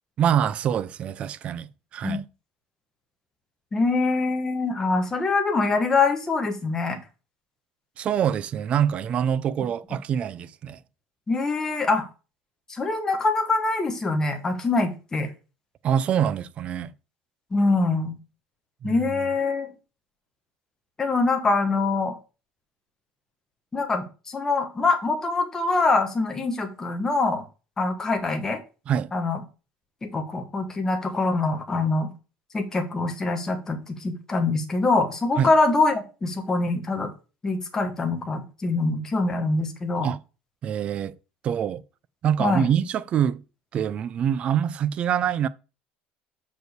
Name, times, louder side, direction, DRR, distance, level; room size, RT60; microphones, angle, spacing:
voice 1, 0.2-2.2 8.0-10.8 15.8-16.9 18.8-19.0 28.9-29.1 35.4-35.5 40.0-40.2 40.6-41.1 41.4-41.8 42.2-43.4 43.7-45.5, right 9 dB, 30° right, 0.4 m, -25 dB
voice 2, 3.7-7.0 11.3-12.1 12.7-15.3 17.5-18.1 18.8-19.7 21.0-22.2 23.7-27.4 27.8-28.6 29.1-29.4 30.0-32.1 32.5-37.1 37.4-40.1 42.4-42.7, left 3 dB, 15° left, 1.3 m, -24 dB
6.2 x 5.2 x 6.6 m
cardioid pair, 175°, 4 cm